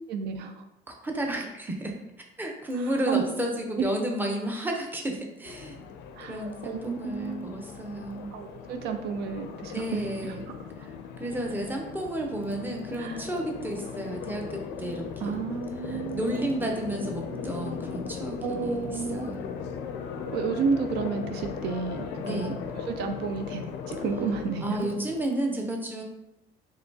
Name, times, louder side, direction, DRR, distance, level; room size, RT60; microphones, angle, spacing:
voice 1, 0.1-0.6 3.1-3.3 3.8-3.9 6.2-7.5 8.3-10.3 13.0-13.2 15.2-16.3 18.4-19.3 20.2-22.6 22.9-24.9, right 5 dB, 75° right, 6 dB, 0.4 m, -31 dB
voice 2, 0.9-2.0 2.4-5.8 6.3-8.3 9.7-10.4 10.8-15.4 15.8-19.5 22.2-22.6 24.6-26.0, right 1 dB, 10° right, 1 dB, 0.7 m, -32 dB
sound 1, 5.4-25.3, left 6 dB, 85° left, 0.4 m, -38 dB
4.2 x 3.0 x 2.8 m, 0.86 s
cardioid pair, 110°, 17 cm